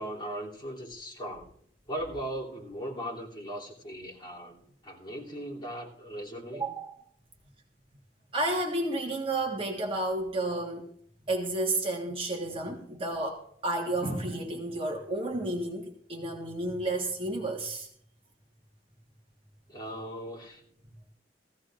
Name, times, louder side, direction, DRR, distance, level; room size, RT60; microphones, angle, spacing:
voice 1, 0.0-1.5 1.9-6.7 19.7-20.6, right 1 dB, 25° left, -5 dB, 3.1 m, -38 dB
voice 2, 6.5-7.0 8.3-10.9 11.3-17.9, right 2 dB, 30° right, 1 dB, 1.5 m, -31 dB
18.0 x 15.5 x 2.6 m, 0.64 s
head